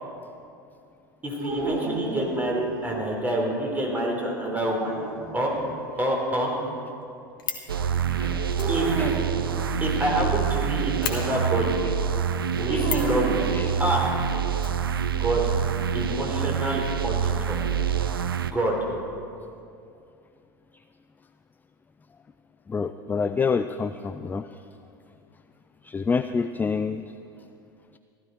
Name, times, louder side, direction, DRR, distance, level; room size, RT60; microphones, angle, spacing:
voice 1, 1.2-4.9 5.3-5.5 6.0-6.5 8.7-9.2 9.8-11.7 12.6-13.5 13.8-14.1 15.2-15.4 15.9-17.6 18.5-18.8, right 1 dB, 15° right, -1 dB, 3.7 m, -27 dB
sound 1, 1.4-3.0 4.6-5.7 8.6-9.4 12.6-14.3, right 3 dB, 45° right, 2.5 m, -32 dB
Fire, 7.0-7.7 8.5-10.3 10.6-10.7 11.0-11.2 12.8-13.2 14.6-15.5 15.7-15.8 16.0-16.1, left 8 dB, 75° left, 1.6 m, -34 dB
sound 2, 7.7-18.5, right 8 dB, 85° right, 0.5 m, -26 dB
voice 2, 8.1-8.5 9.0-9.2 12.7-13.0 13.5-13.7 16.0-16.1 22.7-24.6 25.8-27.0, left 5 dB, 15° left, 10 dB, 0.4 m, -28 dB
15.5 x 13.0 x 4.5 m, 2.5 s
hypercardioid pair, 80°, 12 cm